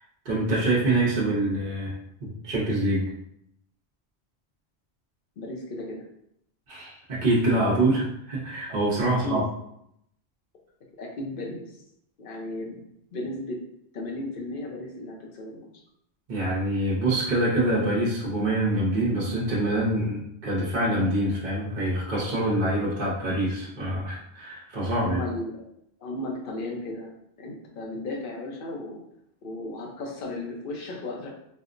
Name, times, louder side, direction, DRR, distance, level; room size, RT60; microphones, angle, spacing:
voice 1, 0.2-2.0 2.2-3.1 6.7-9.4 16.3-25.2, right 1 dB, 50° right, -7 dB, 0.9 m, -25 dB
voice 2, 5.4-6.0 9.1-9.5 11.0-11.7 12.2-12.8 13.1-13.6 13.9-15.7 24.8-25.6 26.0-27.1 27.4-29.0 29.4-31.3, left 2 dB, 60° left, 0 dB, 0.8 m, -35 dB
4.2 x 2.0 x 2.5 m, 0.75 s
omnidirectional pair, 1.1 m